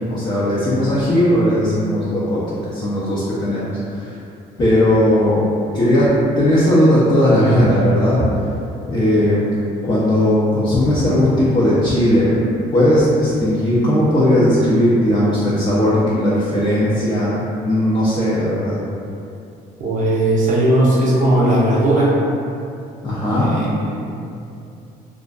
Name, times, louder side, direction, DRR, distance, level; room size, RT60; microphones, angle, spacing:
voice 1, 0.1-4.1 4.6-5.4 5.7-6.1 6.4-8.2 8.9-9.5 9.8-12.4 12.7-18.8 23.0-23.5, left 1 dB, 25° left, -10 dB, 0.5 m, -17 dB
voice 2, 19.8-22.1 23.3-24.3, right 1 dB, 50° right, -5 dB, 0.7 m, -17 dB
2.4 x 2.4 x 2.3 m, 2.6 s
cardioid pair, 110°, 17 cm